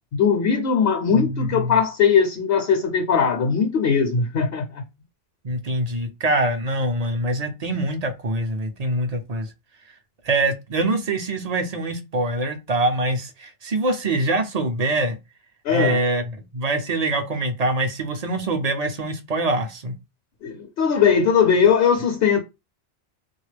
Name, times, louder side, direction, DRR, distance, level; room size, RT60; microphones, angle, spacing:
voice 1, 0.1-4.8 15.6-16.0 20.4-22.4, left 6 dB, 70° left, 0.8 m, -19 dB
voice 2, 1.1-1.7 5.4-9.5 10.2-15.2 15.7-19.9, right 2 dB, 50° right, 0.5 m, -24 dB
3.6 x 2.3 x 3.2 m
omnidirectional pair, 1.1 m